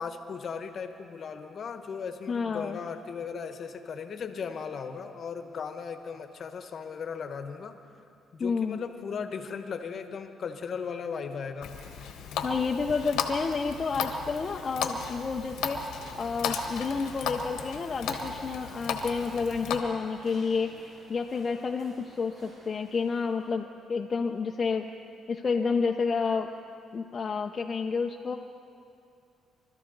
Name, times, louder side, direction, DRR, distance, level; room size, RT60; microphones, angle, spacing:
voice 1, 0.0-7.8 8.3-11.7, left 6 dB, 55° left, 8 dB, 1.1 m, -37 dB
voice 2, 2.3-2.8 8.4-8.8 12.4-24.9 25.3-26.5 26.9-28.3, left 5 dB, 40° left, 2 dB, 0.6 m, -30 dB
Water tap faucet, 11.6-19.8, left 6 dB, 90° left, 1.2 m, -35 dB
sound 1, 11.6-23.5, right 1 dB, 65° right, 3.5 m, -53 dB
24.5 x 13.0 x 4.0 m, 2.5 s
cardioid pair, 90°, 0 cm